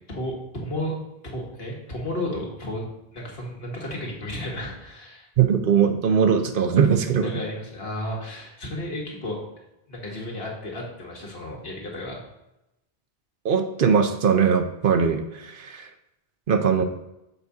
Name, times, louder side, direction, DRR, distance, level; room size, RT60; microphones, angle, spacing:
voice 1, 0.1-1.0 1.2-2.9 3.1-5.3 7.2-12.2, left 1 dB, 70° left, -1 dB, 1.8 m, -33 dB
voice 2, 5.4-7.3 13.4-15.9 16.5-16.8, right 7 dB, 65° right, 7 dB, 0.8 m, -20 dB
6.9 x 4.1 x 4.8 m, 0.90 s
omnidirectional pair, 1.0 m